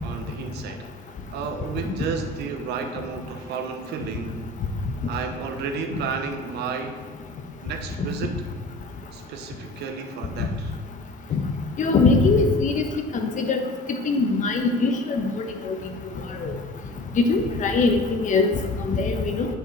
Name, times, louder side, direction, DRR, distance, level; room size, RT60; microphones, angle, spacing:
voice 1, 0.0-0.9 1.3-4.5 5.1-7.0 7.6-8.5 9.1-10.7, right 5 dB, 80° right, 6 dB, 1.1 m, -32 dB
voice 2, 11.8-12.8 13.2-13.6 14.0-15.8 16.4-16.5 17.3-18.5 18.9-19.5, left 3 dB, 50° left, 5 dB, 1.1 m, -21 dB
9.8 x 6.0 x 4.1 m, 1.5 s
cardioid pair, 110°, 17 cm